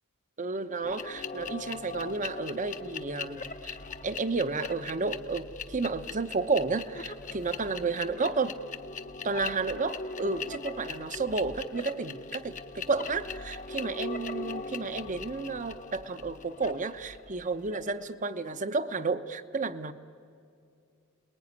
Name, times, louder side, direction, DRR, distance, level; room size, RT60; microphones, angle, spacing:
voice 1, 0.4-3.8 4.0-8.5 9.2-19.9, right 4 dB, 35° right, 12 dB, 0.8 m, -32 dB
sound 1, 0.8-18.1, left 4 dB, 35° left, 0.8 m, -40 dB
30.0 x 20.5 x 9.5 m, 2.5 s
head